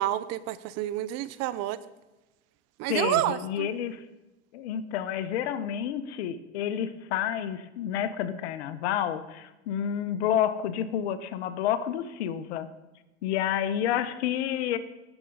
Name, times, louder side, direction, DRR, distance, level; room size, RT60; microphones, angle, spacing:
voice 1, 0.0-1.8 2.8-3.7, right 14 dB, 50° right, 15 dB, 0.7 m, -29 dB
voice 2, 2.9-4.0 4.5-12.7 13.2-14.8, left 10 dB, 75° left, 12 dB, 0.9 m, -29 dB
18.0 x 7.0 x 3.9 m, 1.0 s
hypercardioid pair, 100°, 33 cm